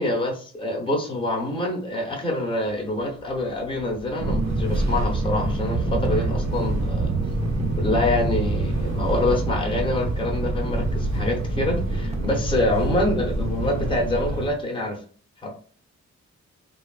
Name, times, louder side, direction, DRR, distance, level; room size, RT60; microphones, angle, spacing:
voice 1, 0.0-7.1 7.8-15.0 15.4-15.5, left 1 dB, 15° left, 0 dB, 0.8 m, -26 dB
sound 1, 2.7-11.4, left 2 dB, 90° left, 0.5 m, -40 dB
Fixed-wing aircraft airplane, 4.2-14.5, right 2 dB, 60° right, 0.8 m, -26 dB
sound 2, 5.7-13.0, right 2 dB, 20° right, 0.5 m, -39 dB
3.2 x 2.3 x 2.3 m, 0.42 s
wide cardioid pair, 120°, 30 cm